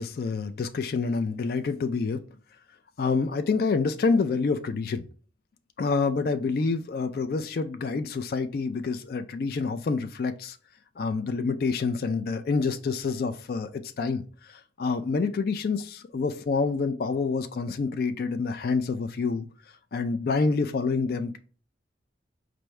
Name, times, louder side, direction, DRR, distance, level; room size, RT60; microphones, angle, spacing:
voice 1, 0.0-2.2 3.0-5.1 5.8-10.6 11.0-13.7 14.0-19.5 19.9-21.4, left 4 dB, 55° left, 0.3 m, -27 dB
4.6 x 2.6 x 3.1 m
head